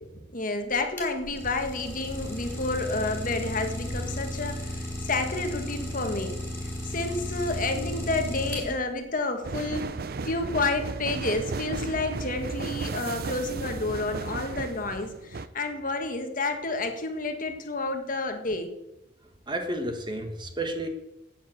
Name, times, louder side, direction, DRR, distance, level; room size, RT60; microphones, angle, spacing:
voice 1, 0.0-6.3 6.8-10.0 10.2-18.7, left 2 dB, 45° left, 6 dB, 1.5 m, -30 dB
Idling, 0.7-9.0, equal, 10° left, 4.0 m, -34 dB
sound 1, 9.4-15.5, right 3 dB, 50° right, 0.5 m, -34 dB
voice 2, 19.5-20.9, right 1 dB, 25° right, 5 dB, 1.5 m, -31 dB
9.6 x 8.9 x 7.9 m, 0.90 s
head